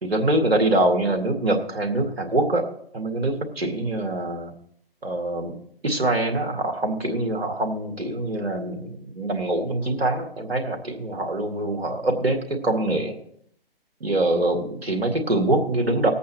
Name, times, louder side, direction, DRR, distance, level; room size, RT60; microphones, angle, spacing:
voice 1, 0.0-2.6 2.9-4.5 5.0-5.6 5.8-13.2 14.0-16.1, right 1 dB, 80° right, 3 dB, 2.2 m, -24 dB
20.0 x 8.4 x 2.9 m, 0.66 s
figure-of-eight pair, 135°, 30 cm